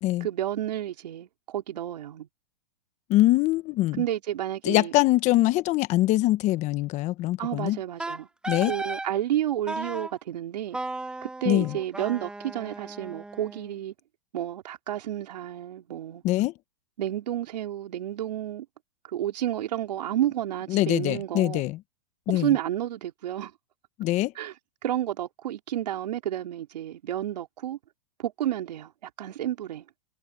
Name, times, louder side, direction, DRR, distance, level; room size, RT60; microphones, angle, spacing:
voice 1, 0.2-2.3 4.0-4.9 7.4-8.3 8.7-10.8 11.2-13.9 14.3-16.2 17.0-18.6 19.1-21.6 22.3-23.5 24.4-24.5 24.8-27.8 28.2-29.8, right 12 dB, 80° right, 4.6 m, -31 dB
voice 2, 3.1-4.0 4.6-7.8 8.5-8.7 11.4-11.8 16.2-16.5 20.7-21.8 22.3-22.5 24.0-24.3, left 17 dB, 35° left, 1.3 m, -23 dB
Wind instrument woodwind instrument, 8.0-9.1 9.7-10.1 10.7-13.7, right 2 dB, 5° right, 0.6 m, -35 dB
hypercardioid pair, 140°, 21 cm